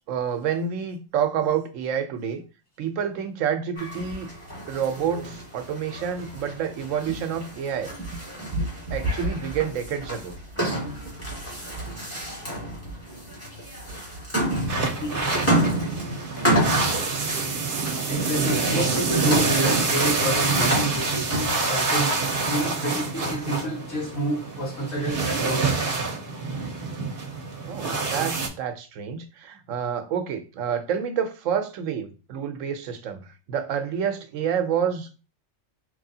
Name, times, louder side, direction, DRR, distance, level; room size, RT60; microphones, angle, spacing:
voice 1, 0.1-2.4 2.8-4.3 4.7-7.9 8.9-10.3 22.8-23.0 27.7-35.2, right 8 dB, 80° right, 1.0 m, -28 dB
sound 1, 3.8-21.9, right 1 dB, 10° left, 1.9 m, -30 dB
sound 2, 14.7-28.5, right 3 dB, 50° right, 0.9 m, -26 dB
voice 2, 15.0-15.5 18.1-21.4 21.6-25.8, right 1 dB, 85° left, 1.7 m, -29 dB
4.7 x 3.1 x 2.7 m
omnidirectional pair, 1.3 m